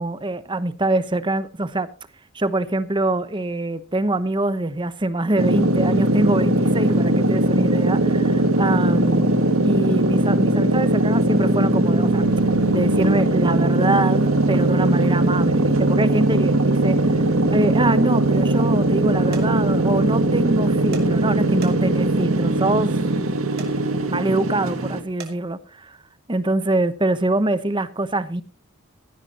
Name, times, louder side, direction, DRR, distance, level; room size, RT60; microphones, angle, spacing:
voice 1, 0.0-1.9 2.3-9.3 9.6-12.2 12.7-17.2 17.5-23.0 24.1-26.0 26.3-28.4, right 2 dB, 20° right, 0.9 m, -24 dB
sound 1, 5.4-25.0, right 1 dB, 75° right, 1.9 m, -20 dB
sound 2, 19.3-19.5 20.9-21.1 21.6-22.0 23.6-23.7 25.2-25.3, right 5 dB, 45° right, 2.8 m, -37 dB
16.5 x 14.5 x 2.9 m
head